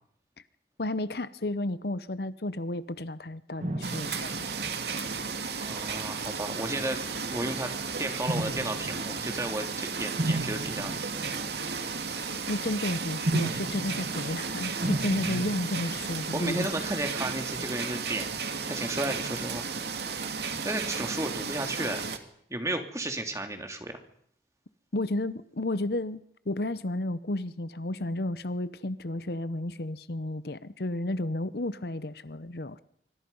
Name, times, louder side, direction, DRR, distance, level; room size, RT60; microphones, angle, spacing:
voice 1, 0.8-4.3 12.5-16.7 24.9-32.8, left 1 dB, 60° left, 15 dB, 0.9 m, -32 dB
sound 1, 3.6-5.9 6.5-6.9 8.3-12.4 13.3-17.7, right 1 dB, 45° right, 2.4 m, -36 dB
sound 2, 3.8-22.2, right 5 dB, 70° right, 2.4 m, -34 dB
voice 2, 5.6-7.0 7.3-7.7 8.0-11.0 15.3-15.5 16.3-18.3 18.7-19.6 20.6-22.1 22.5-23.9, right 1 dB, 15° right, 5 dB, 2.9 m, -33 dB
25.5 x 25.5 x 5.5 m, 0.67 s
head